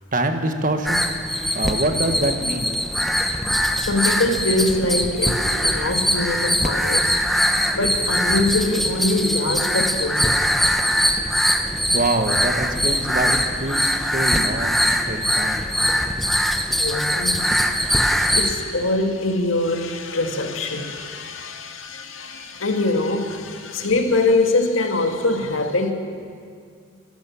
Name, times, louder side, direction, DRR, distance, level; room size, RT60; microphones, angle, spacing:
voice 1, 0.1-1.1 1.5-2.8 11.9-15.7, right 1 dB, 40° right, 6 dB, 1.6 m, -25 dB
sound 1, 0.8-18.5, equal, ahead, 1.0 m, -22 dB
voice 2, 3.8-7.2 7.7-10.4 13.9-14.0 16.8-17.6 18.0-25.9, left 2 dB, 85° left, 4 dB, 2.0 m, -23 dB
28.0 x 13.0 x 7.2 m, 2.2 s
head